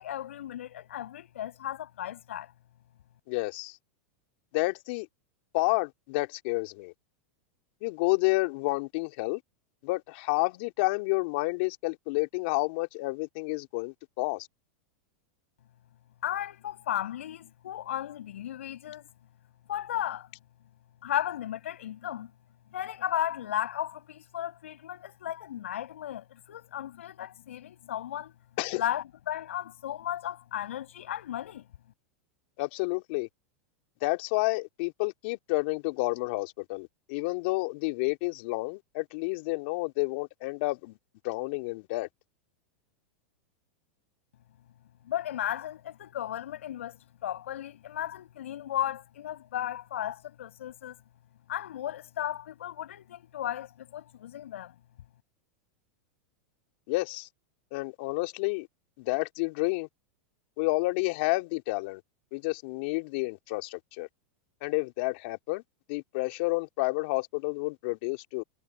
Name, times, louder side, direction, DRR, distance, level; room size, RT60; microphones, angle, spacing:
voice 1, 0.0-2.5 16.2-19.0 19.7-20.3 21.0-22.3 22.7-28.3 28.7-31.6 45.0-51.0 51.5-54.7, left 11 dB, 80° left, 6.5 m, -35 dB
voice 2, 3.3-3.8 4.5-5.1 5.5-6.9 7.8-9.4 9.8-14.5 28.6-28.8 32.6-33.3 34.0-41.0 41.2-42.1 56.9-57.3 57.7-58.7 59.0-59.9 60.6-62.0 62.3-64.1 64.6-65.6 65.9-68.4, left 24 dB, 60° left, 3.0 m, -30 dB
hypercardioid pair, 115°, 7 cm